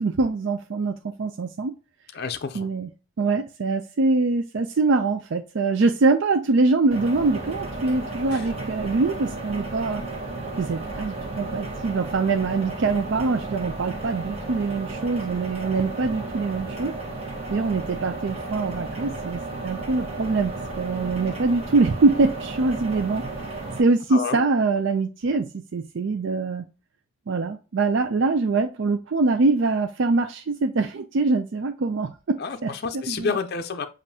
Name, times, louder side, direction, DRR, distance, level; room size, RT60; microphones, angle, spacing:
voice 1, 0.0-1.7 2.5-2.9 3.2-10.0 10.6-16.9 17.5-23.2 23.8-26.7 27.3-33.4, right 3 dB, 60° right, 0.4 m, -24 dB
voice 2, 2.1-2.7 8.3-8.5 24.1-24.4 32.4-33.9, left 5 dB, 50° left, 0.5 m, -29 dB
sound 1, 6.9-23.8, right 2 dB, 30° right, 1.2 m, -33 dB
7.2 x 2.6 x 2.8 m
head